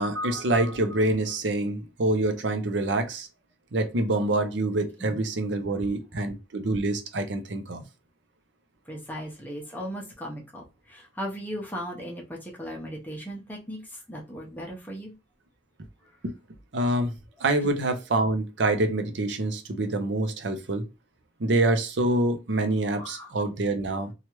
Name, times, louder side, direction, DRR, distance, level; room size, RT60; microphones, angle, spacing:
voice 1, 0.0-3.3 3.7-7.8 16.2-16.3 16.7-17.1 17.4-20.8 21.4-24.1, right 2 dB, 65° right, 0.6 m, -26 dB
voice 2, 8.9-15.1 17.6-17.8 22.9-23.4, equal, 10° left, 0.7 m, -37 dB
3.0 x 2.3 x 3.0 m
head